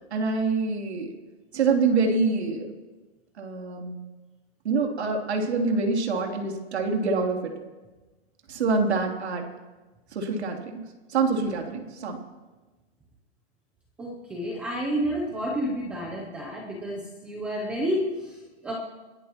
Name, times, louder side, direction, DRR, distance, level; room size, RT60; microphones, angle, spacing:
voice 1, 0.1-1.2 1.5-2.7 3.4-4.0 4.6-7.5 8.5-9.4 10.1-10.8 11.1-12.2, right 4 dB, 75° right, 2 dB, 3.2 m, -25 dB
voice 2, 14.0-18.4 18.6-18.7, equal, 5° right, -2 dB, 0.6 m, -30 dB
29.5 x 12.0 x 3.0 m, 1.2 s
hypercardioid pair, 175°, 33 cm